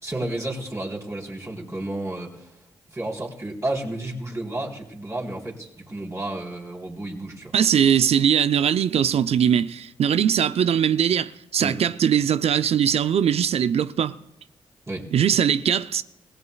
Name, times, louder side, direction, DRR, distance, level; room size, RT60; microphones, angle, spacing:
voice 1, 0.0-2.5 2.9-7.6 11.6-11.7 14.9-15.1, right 1 dB, 25° right, 3.7 m, -31 dB
voice 2, 7.5-14.1 15.1-16.0, right 8 dB, 65° right, 0.5 m, -21 dB
24.5 x 17.0 x 2.3 m
supercardioid pair, 50°, 11 cm